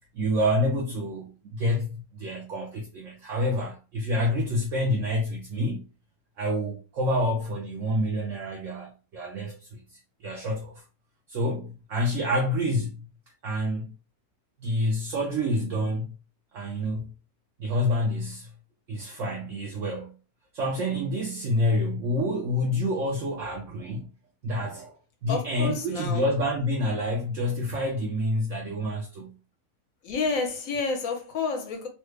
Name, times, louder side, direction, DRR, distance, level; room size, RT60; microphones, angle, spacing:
voice 1, 0.1-5.8 6.4-10.8 11.3-13.1 13.4-13.9 14.6-16.1 16.5-17.1 17.6-18.5 18.9-20.1 20.5-24.1 24.4-25.0 25.2-29.3, left 1 dB, 65° right, 0.9 m, -28 dB
voice 2, 25.3-26.2 30.0-31.9, left 4 dB, 65° left, 1.2 m, -29 dB
3.2 x 2.2 x 3.2 m
omnidirectional pair, 1.6 m